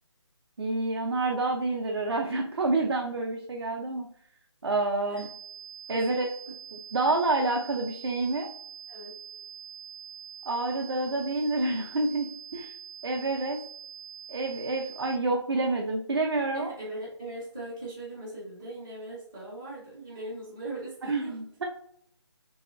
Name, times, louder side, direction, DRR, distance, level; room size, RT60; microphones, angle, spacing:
voice 1, 0.6-4.1 4.6-5.3 5.9-6.3 6.7-8.5 10.5-12.7 13.0-13.6 14.3-16.7 21.0-21.6, right 2 dB, 55° right, 1 dB, 0.5 m, -28 dB
sound 1, 5.2-15.2, right 9 dB, 90° right, 0.8 m, -45 dB
voice 2, 8.9-9.2 16.5-21.4, right 2 dB, 10° right, -10 dB, 0.5 m, -40 dB
3.1 x 2.7 x 2.4 m, 0.63 s
hypercardioid pair, 175°, 16 cm